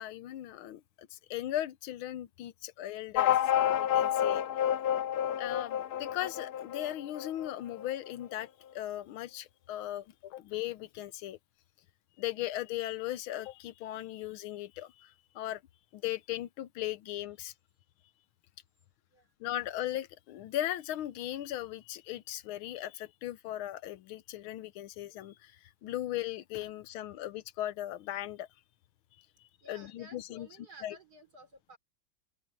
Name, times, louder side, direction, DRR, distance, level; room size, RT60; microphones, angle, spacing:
voice 1, 0.0-3.4 3.8-4.4 5.4-11.4 12.2-15.6 15.9-17.5 19.4-25.6 25.8-28.5 29.7-30.5 30.8-31.0, left 13 dB, 90° left, 1.6 m, -38 dB
sound 1, 3.2-8.1, left 10 dB, 65° left, 1.1 m, -29 dB
voice 2, 29.6-31.8, right 2 dB, 50° right, 3.7 m, -54 dB
open air
omnidirectional pair, 2.2 m